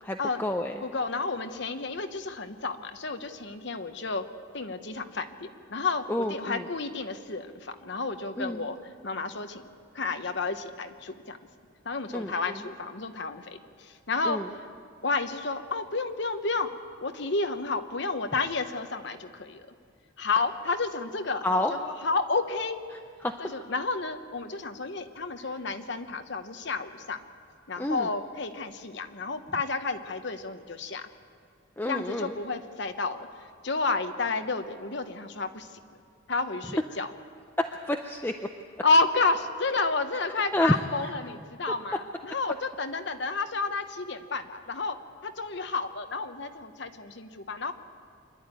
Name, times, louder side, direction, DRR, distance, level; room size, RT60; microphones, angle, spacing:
voice 1, 0.0-0.8 6.1-6.7 8.4-8.7 12.1-12.6 14.2-14.5 21.4-21.8 22.9-23.3 27.8-28.1 31.8-32.4 37.6-38.3 40.5-41.1, left 1 dB, 10° left, 4 dB, 0.6 m, -29 dB
voice 2, 0.8-4.2 4.5-8.8 9.0-9.6 9.9-11.4 11.8-14.4 15.0-16.7 17.0-19.7 20.2-22.8 23.4-27.2 27.7-31.0 31.9-33.3 33.6-35.7 36.3-37.1 38.8-47.7, left 3 dB, 55° left, 8 dB, 1.1 m, -31 dB
25.5 x 11.5 x 9.1 m, 2.2 s
head